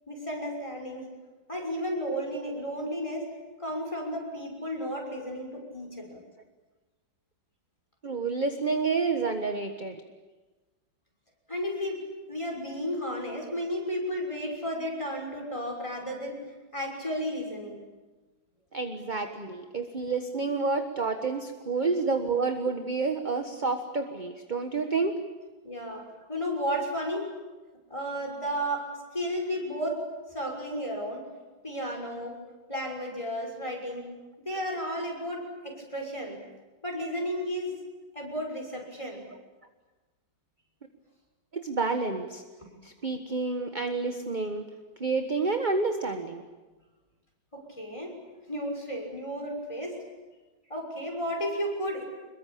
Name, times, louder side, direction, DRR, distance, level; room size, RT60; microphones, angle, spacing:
voice 1, 0.1-1.1 1.5-3.3 3.6-6.2 11.5-12.0 12.3-16.4 16.7-17.8 25.6-27.2 27.9-28.9 29.1-30.0 30.3-31.3 31.6-32.4 32.7-34.1 34.4-36.4 36.8-37.7 38.1-39.2 42.6-42.7 47.5-48.1 48.5-50.0 50.7-52.0, equal, 15° left, 1 dB, 6.2 m, -33 dB
voice 2, 8.0-10.0 18.7-25.2 41.5-42.4 42.8-44.7 45.0-46.4, right 4 dB, 25° right, 6 dB, 1.3 m, -29 dB
26.5 x 22.5 x 8.7 m, 1.2 s
omnidirectional pair, 2.1 m